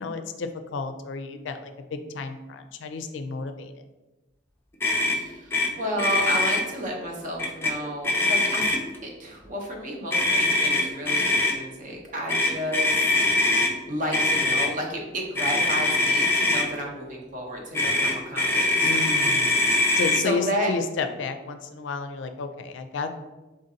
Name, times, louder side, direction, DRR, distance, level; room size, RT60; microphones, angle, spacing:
voice 1, 0.0-3.7 18.8-19.5 20.0-23.2, left 4 dB, 80° left, 8 dB, 0.4 m, -32 dB
Motor vehicle (road), 4.8-5.2 5.5-5.7 6.0-6.6 7.4-7.7 8.0-9.0 10.1-11.5 12.3-13.7 14.1-14.7 15.4-16.7 17.7-20.2, left 2 dB, 10° left, 0.4 m, -22 dB
voice 2, 5.0-13.3 13.9-19.3 19.6-20.7, equal, 45° right, 0 dB, 0.8 m, -32 dB
3.8 x 3.8 x 2.7 m, 1.1 s
head